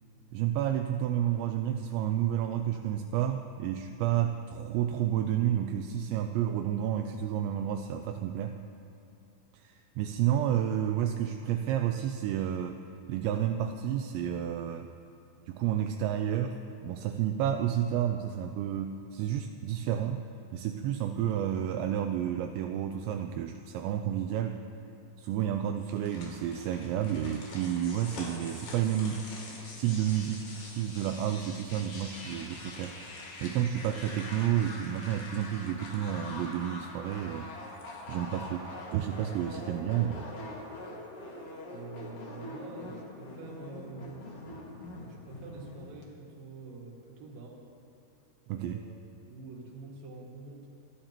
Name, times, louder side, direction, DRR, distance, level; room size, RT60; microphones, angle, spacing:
voice 1, 0.3-8.6 9.5-12.8 13.1-14.9 15.5-20.3 20.5-24.6 25.2-29.3 29.8-33.0 33.4-37.5 38.1-40.3 48.5-48.8, right 10 dB, 85° right, 5 dB, 2.8 m, -30 dB
sound 1, 25.8-36.8 37.1-37.2 37.6-38.3 38.6-38.8, left 2 dB, 80° left, 5.1 m, -50 dB
sound 2, 27.6-46.0, left 2 dB, 45° left, 2.0 m, -44 dB
voice 2, 41.7-44.3 45.0-47.6 48.5-49.0 49.3-50.7, right 4 dB, 55° right, -2 dB, 3.5 m, -46 dB
28.0 x 13.0 x 3.0 m, 2.9 s
omnidirectional pair, 5.2 m